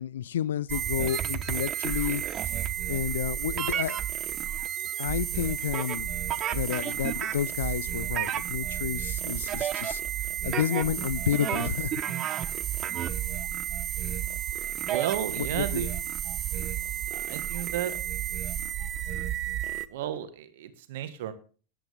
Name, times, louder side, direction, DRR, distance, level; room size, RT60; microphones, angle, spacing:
voice 1, 0.0-2.6 2.9-4.0 5.0-6.2 6.5-10.0 10.4-12.0 14.0-14.1 15.4-15.9, left 10 dB, 70° left, 0.5 m, -31 dB
sound 1, 0.7-19.9, right 11 dB, 35° right, 0.9 m, -31 dB
voice 2, 14.9-15.9 17.1-17.9 19.9-21.3, right 10 dB, 60° right, 1.6 m, -33 dB
14.0 x 11.0 x 3.6 m
figure-of-eight pair, 85°, 0 cm